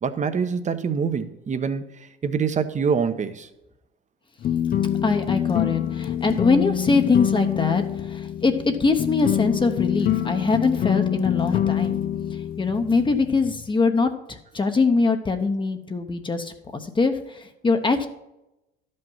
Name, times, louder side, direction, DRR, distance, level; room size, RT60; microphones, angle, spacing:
voice 1, 0.0-3.5, right 6 dB, 35° right, 11 dB, 0.9 m, -25 dB
sound 1, 4.4-13.7, left 10 dB, 45° left, 0.4 m, -26 dB
voice 2, 5.0-12.0 12.3-18.1, left 4 dB, 25° left, 6 dB, 0.9 m, -23 dB
11.5 x 5.4 x 5.6 m, 0.93 s
supercardioid pair, 90°, 21 cm